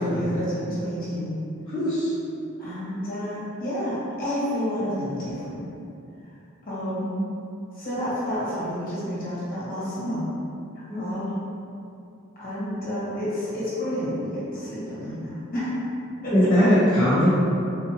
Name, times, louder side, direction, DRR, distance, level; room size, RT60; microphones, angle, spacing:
voice 1, 0.0-1.4 2.6-5.7 6.6-7.2 7.7-10.2 10.7-11.4 12.4-15.7 16.2-16.5, equal, 40° left, -10 dB, 1.2 m, -29 dB
voice 2, 1.7-2.1 10.9-11.2 16.3-17.3, equal, 20° left, -15 dB, 0.7 m, -20 dB
3.7 x 2.5 x 2.8 m, 2.6 s
head